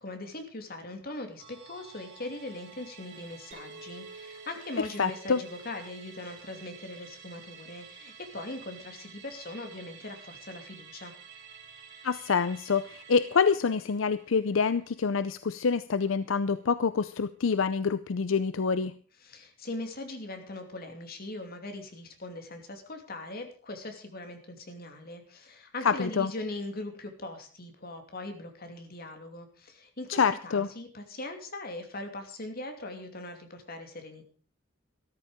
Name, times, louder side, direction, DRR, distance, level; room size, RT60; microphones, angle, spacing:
voice 1, 0.0-11.1 19.2-34.2, left 2 dB, 50° left, 5 dB, 2.8 m, -40 dB
Musical instrument, 1.4-16.1 16.4-16.5, right 7 dB, 60° right, 4.1 m, -51 dB
Chink clink, 3.5-8.0, right 2 dB, 40° right, 4.8 m, -52 dB
voice 2, 4.8-5.4 12.0-18.9 25.8-26.3 30.1-30.7, left 5 dB, 80° left, 14 dB, 0.6 m, -26 dB
13.5 x 13.5 x 5.1 m, 0.43 s
head